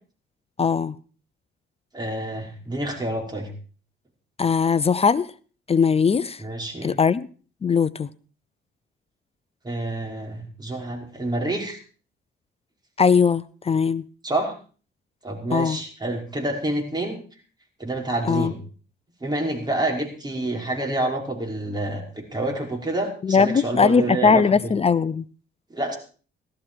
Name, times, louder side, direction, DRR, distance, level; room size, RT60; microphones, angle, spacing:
voice 1, 0.6-1.0 4.4-5.3 5.7-6.4 6.8-7.3 7.6-8.1 13.0-14.0 15.5-15.8 18.3-18.5 23.2-25.2, left 5 dB, 30° left, 0.6 m, -20 dB
voice 2, 1.9-3.5 6.4-6.9 9.6-11.8 14.2-14.5 15.2-17.2 17.8-18.6 19.2-24.7 25.7-26.0, right 2 dB, 20° right, 5.6 m, -28 dB
17.0 x 13.5 x 4.7 m
cardioid pair, 90°, 20 cm